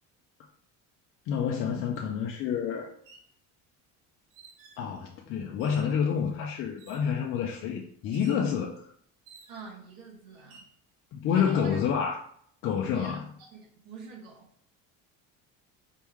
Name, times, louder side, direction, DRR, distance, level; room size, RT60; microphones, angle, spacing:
voice 1, 1.3-2.9 4.8-8.9 11.1-12.2 12.6-13.2, left 7 dB, 40° left, 0.4 m, -28 dB
sound 1, 2.0-2.1 2.9-3.3 4.3-4.9 5.6-6.0 6.8-7.2 8.1-8.5 9.3-9.8 10.4-10.7, right 5 dB, 65° right, 1.0 m, -53 dB
voice 2, 9.5-10.7 11.2-11.8 12.9-14.5, right 4 dB, 85° right, 1.7 m, -45 dB
4.5 x 3.0 x 3.5 m
cardioid pair, 180°, 34 cm